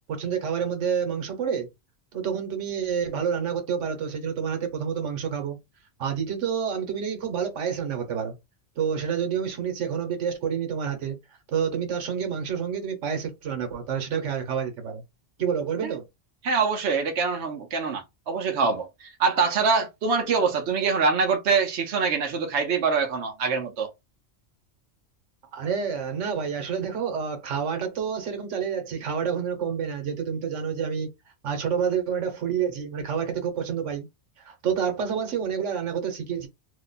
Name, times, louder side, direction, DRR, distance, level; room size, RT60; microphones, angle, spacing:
voice 1, 0.1-1.7 2.1-5.6 6.0-8.3 8.8-11.2 11.5-15.0 15.4-16.0 25.5-31.1 31.4-34.1 34.4-36.5, right 7 dB, 90° right, 1.3 m, -28 dB
voice 2, 16.4-23.9, right 5 dB, 70° right, 1.0 m, -24 dB
2.9 x 2.2 x 3.9 m
omnidirectional pair, 1.2 m